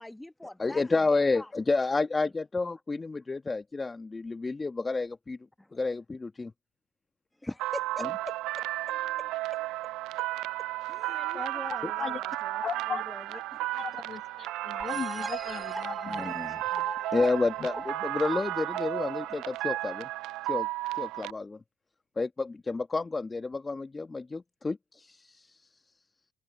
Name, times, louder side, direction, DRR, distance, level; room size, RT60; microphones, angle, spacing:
voice 1, 0.0-1.5 2.2-2.3 5.6-5.7 7.4-9.6 10.0-10.1 10.8-13.4, left 1 dB, 10° left, 1.2 m, -43 dB
voice 2, 0.6-5.4 5.7-6.5 16.1-16.8 17.1-20.1 20.4-20.7 20.9-21.6 22.2-25.6, left 3 dB, 25° left, 1.4 m, -30 dB
sound 1, 7.6-21.3, right 17 dB, 75° right, 0.4 m, -33 dB
voice 3, 11.1-11.4 12.0-12.2 12.6-13.0 13.3-13.4 13.8-16.3, left 7 dB, 50° left, 1.6 m, -37 dB
sound 2, 14.8-20.3, right 1 dB, 10° right, 3.5 m, -41 dB
hypercardioid pair, 60°, 0 cm